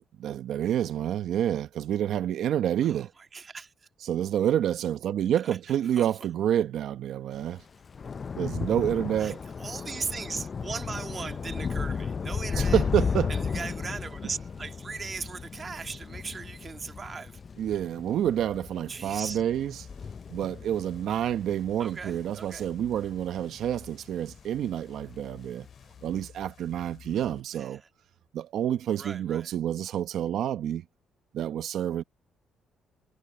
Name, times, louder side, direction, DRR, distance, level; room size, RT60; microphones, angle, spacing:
voice 1, 0.2-3.1 4.0-7.6 8.3-9.4 12.5-13.3 14.2-14.3 17.6-19.9 20.3-25.7 26.0-27.8 28.3-30.8 31.3-32.0, right 10 dB, 75° right, 0.9 m, -28 dB
voice 2, 3.3-3.7 5.5-5.6 6.0-6.1 9.2-9.3 9.6-12.8 13.3-17.4 18.9-19.4 21.8-22.7 27.6-27.8 29.0-29.5, right 5 dB, 35° right, 1.7 m, -38 dB
Thunder / Rain, 7.4-24.0 24.3-24.8 25.1-25.2, left 5 dB, 40° left, 0.4 m, -34 dB
sound 1, 19.5-27.4, left 9 dB, 65° left, 2.6 m, -52 dB
cardioid pair, 90°, 0 cm